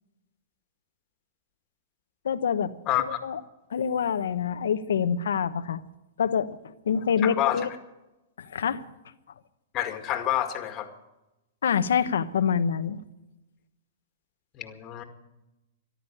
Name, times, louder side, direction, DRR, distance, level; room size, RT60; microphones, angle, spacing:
voice 1, 2.2-2.7 3.1-3.4 3.7-5.8 6.2-6.6 6.8-7.7 8.4-8.8 11.6-13.0, left 7 dB, 80° left, 12 dB, 1.0 m, -26 dB
voice 2, 2.9-3.2 7.2-7.6 9.7-10.9 14.5-15.0, left 12 dB, 35° left, 7 dB, 2.0 m, -28 dB
14.0 x 12.0 x 8.6 m, 0.97 s
hypercardioid pair, 130°, 0 cm